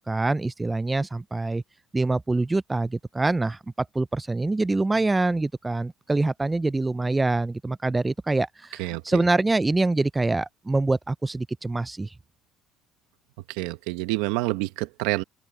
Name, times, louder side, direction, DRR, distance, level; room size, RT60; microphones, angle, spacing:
voice 1, 0.0-1.6 1.9-12.1, right 2 dB, 15° right, 0.5 m, -25 dB
voice 2, 8.8-9.2 13.5-15.2, right 20 dB, 85° right, 1.3 m, -28 dB
open air
supercardioid pair, 85°, 0 cm